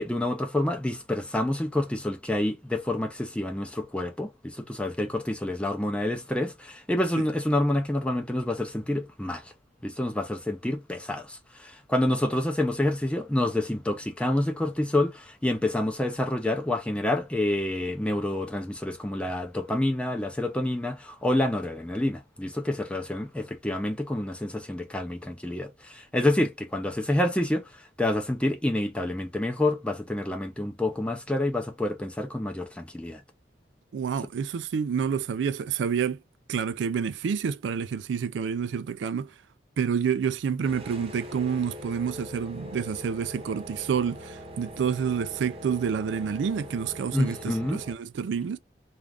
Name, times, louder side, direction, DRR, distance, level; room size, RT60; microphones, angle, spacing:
voice 1, 0.0-9.5 9.8-33.2 47.1-47.8, left 1 dB, 5° left, 0.5 m, -28 dB
voice 2, 33.9-36.2 36.5-39.3 39.8-48.6, right 7 dB, 80° right, 0.3 m, -28 dB
sound 1, 40.6-47.9, left 1 dB, 30° right, 0.7 m, -42 dB
2.4 x 2.4 x 3.2 m
head